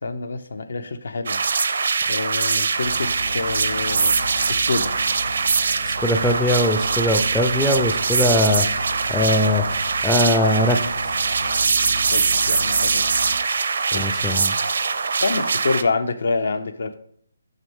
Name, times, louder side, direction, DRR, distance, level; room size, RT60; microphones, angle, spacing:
voice 1, 0.0-1.4 2.1-4.2 4.5-4.9 12.1-13.0 13.9-14.1 15.2-16.9, left 3 dB, 70° left, 10 dB, 0.7 m, -26 dB
sound 1, 1.3-15.8, right 5 dB, 60° right, 0.5 m, -22 dB
sound 2, 2.8-13.4, left 2 dB, 90° left, 1.4 m, -36 dB
voice 2, 5.8-9.6 10.0-10.8 13.9-14.5, left 1 dB, 5° left, 3 dB, 0.4 m, -21 dB
6.4 x 6.2 x 3.6 m, 0.64 s
hypercardioid pair, 160°, 0 cm